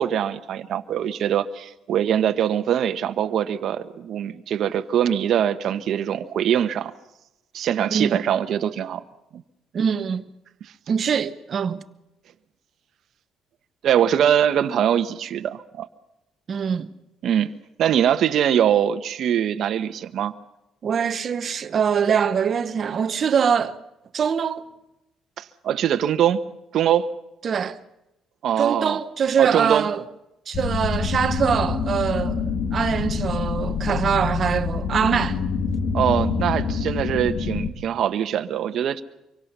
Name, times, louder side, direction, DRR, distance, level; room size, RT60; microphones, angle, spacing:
voice 1, 0.0-6.9 7.5-9.0 9.3-9.4 13.8-15.9 17.2-17.5 17.8-20.3 25.4-26.4 26.7-27.1 28.4-29.0 29.4-29.8 35.9-39.0, right 9 dB, 55° right, 1.2 m, -22 dB
voice 2, 9.7-10.3 10.9-11.8 16.5-16.9 20.8-23.8 24.1-24.6 27.4-27.8 28.6-30.0 30.5-35.5, right 7 dB, 35° right, 1.0 m, -23 dB
sound 1, 30.5-37.7, left 5 dB, 45° left, 2.4 m, -26 dB
25.5 x 23.5 x 5.6 m
cardioid pair, 160°, 0 cm